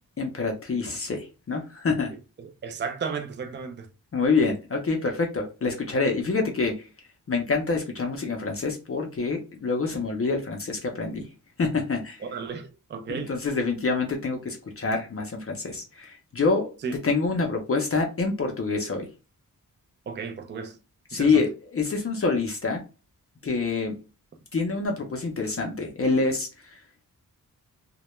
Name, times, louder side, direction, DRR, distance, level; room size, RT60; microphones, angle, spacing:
voice 1, 0.2-2.1 4.1-6.8 7.3-11.3 11.6-12.2 13.1-16.7 17.0-19.1 21.1-22.8 23.4-24.0 24.5-26.8, left 4 dB, 40° left, 0.5 m, -26 dB
voice 2, 2.4-3.9 12.2-13.3 16.8-17.0 20.1-20.8 21.1-21.5, right 5 dB, 35° right, 0.4 m, -34 dB
2.2 x 2.1 x 2.9 m
wide cardioid pair, 145°, 35 cm